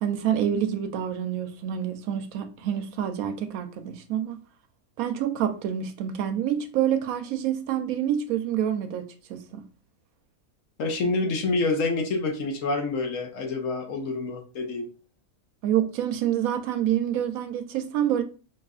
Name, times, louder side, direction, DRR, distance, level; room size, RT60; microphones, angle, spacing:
voice 1, 0.0-4.4 5.0-9.6 15.6-18.2, right 10 dB, 80° right, 1.0 m, -27 dB
voice 2, 10.8-14.9, left 3 dB, 65° left, 1.1 m, -27 dB
4.8 x 2.9 x 2.3 m
omnidirectional pair, 1.5 m